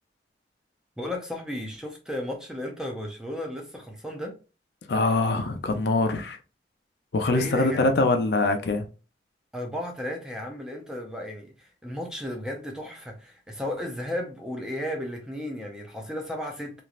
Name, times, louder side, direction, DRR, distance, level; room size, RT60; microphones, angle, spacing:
voice 1, 1.0-4.3 7.3-7.9 9.5-16.8, left 1 dB, 5° right, 0.5 m, -34 dB
voice 2, 4.9-6.4 7.1-8.9, left 2 dB, 65° left, 0.4 m, -23 dB
3.0 x 2.5 x 2.4 m
head